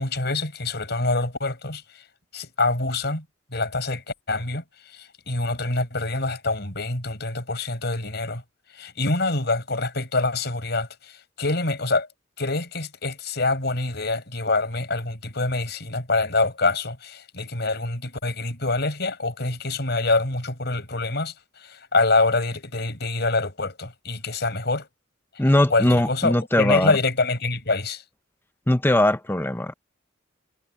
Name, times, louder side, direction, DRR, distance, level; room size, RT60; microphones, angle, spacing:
voice 1, 0.0-1.8 2.3-3.2 3.5-4.6 4.9-8.4 8.7-12.1 12.4-24.9 25.7-28.0, left 3 dB, 55° left, 5.9 m, -25 dB
voice 2, 25.4-26.9 28.7-29.7, left 1 dB, 10° left, 0.7 m, -20 dB
head